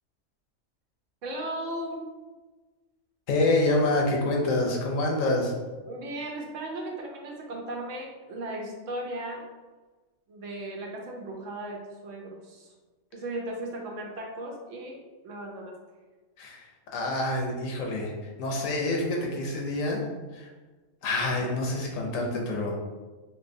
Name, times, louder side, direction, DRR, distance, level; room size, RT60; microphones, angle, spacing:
voice 1, 1.2-2.0 5.8-9.5 10.3-12.7 13.1-15.8, right 1 dB, 70° right, 0 dB, 0.9 m, -36 dB
voice 2, 3.3-5.5 16.4-16.7 16.9-18.1 18.4-20.1 20.3-20.5 21.0-22.8, left 2 dB, 75° left, -1 dB, 1.0 m, -27 dB
3.2 x 2.8 x 2.6 m, 1.3 s
omnidirectional pair, 1.4 m